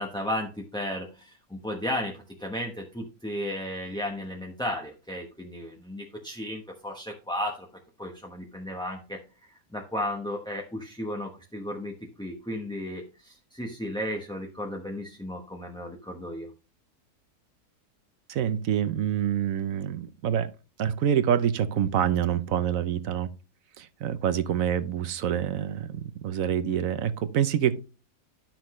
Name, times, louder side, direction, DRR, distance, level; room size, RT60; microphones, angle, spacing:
voice 1, 0.0-7.7 8.0-16.5, left 1 dB, 5° left, 0.8 m, -34 dB
voice 2, 18.3-20.5 20.8-23.3 23.8-27.8, right 9 dB, 65° right, 1.1 m, -26 dB
12.0 x 5.9 x 3.1 m
omnidirectional pair, 1.6 m